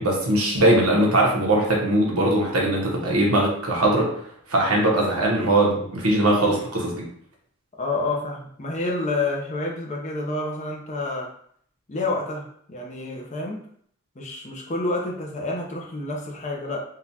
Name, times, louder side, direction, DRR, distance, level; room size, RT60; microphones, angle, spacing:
voice 1, 0.0-4.1 4.5-7.0, right 1 dB, 90° right, -2 dB, 1.0 m, -20 dB
voice 2, 7.8-11.3 11.9-13.7 14.2-16.8, left 2 dB, 30° left, 0 dB, 0.6 m, -28 dB
3.9 x 2.4 x 2.8 m, 0.64 s
head